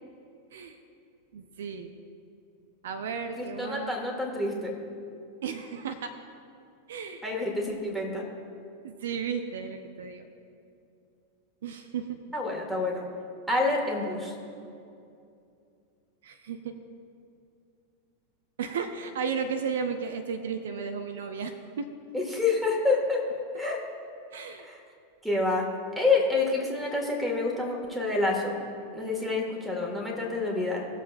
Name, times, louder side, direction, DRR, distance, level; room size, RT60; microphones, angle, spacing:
voice 1, 1.3-1.9 2.8-4.0 5.4-6.1 6.9-7.3 8.8-10.3 11.6-12.2 16.2-16.8 18.6-21.9 24.3-24.7, right 6 dB, 60° right, 7 dB, 0.6 m, -34 dB
voice 2, 3.4-4.7 7.2-8.2 12.3-13.0 13.5-14.4 22.1-23.2 23.6-23.8 24.6-24.8 25.2-25.7 25.9-28.6 28.9-30.9, left 3 dB, ahead, -2 dB, 2.0 m, -28 dB
19.0 x 7.3 x 2.6 m, 2.5 s
figure-of-eight pair, 90°, 0 cm